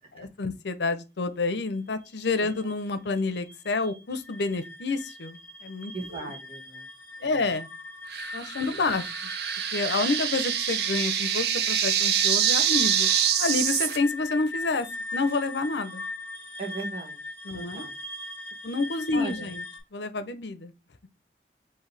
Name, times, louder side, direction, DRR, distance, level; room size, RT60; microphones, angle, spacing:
voice 1, 0.1-5.9 7.2-7.7 8.3-9.3 9.7-13.1 13.4-14.9 15.1-16.0 17.5-17.9 18.6-19.6 19.9-20.7, left 3 dB, 85° left, 0.6 m, -29 dB
sound 1, 1.9-19.8, left 2 dB, 10° left, 1.6 m, -40 dB
voice 2, 5.9-6.9 7.2-7.5 8.6-9.0 16.6-17.2 17.5-17.9 19.1-19.5, right 3 dB, 35° right, 1.5 m, -38 dB
sound 2, 8.1-14.0, right 9 dB, 70° right, 0.5 m, -25 dB
4.7 x 3.1 x 3.2 m
head